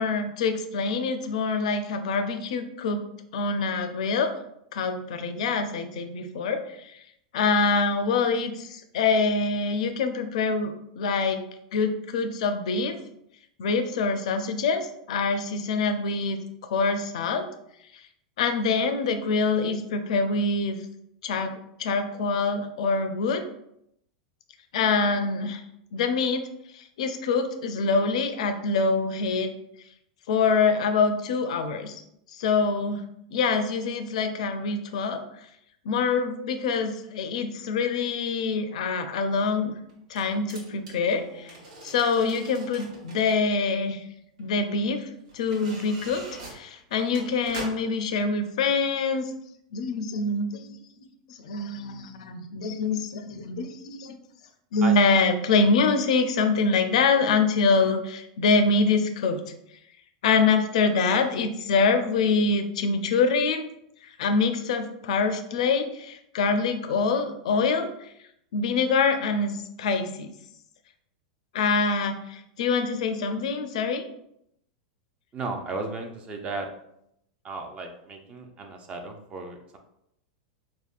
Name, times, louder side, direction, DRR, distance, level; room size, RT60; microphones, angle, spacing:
voice 1, 0.0-3.0 3.3-4.3 4.7-7.0 7.3-11.4 11.7-12.9 13.6-16.4 16.7-17.5 17.9-18.0 18.4-20.8 21.2-23.4 24.7-25.6 25.9-26.4 26.7-29.5 30.3-32.0 32.3-33.0 33.3-35.2 35.8-39.8 40.1-41.6 41.8-44.0 44.4-45.1 45.3-49.3 49.7-54.2 54.7-59.4 60.2-63.7 64.2-68.1 68.5-69.5 69.8-70.3 71.5-74.0, left 4 dB, 75° left, 7 dB, 0.4 m, -25 dB
sound 1, 38.5-38.6 39.9-43.4 44.4-44.5 45.3-48.0 48.5-48.6, right 2 dB, 75° right, 1.0 m, -43 dB
voice 2, 75.3-76.7 77.4-79.8, right 3 dB, 30° right, 4 dB, 0.4 m, -35 dB
3.4 x 2.2 x 2.4 m, 0.77 s
hypercardioid pair, 120°, 4 cm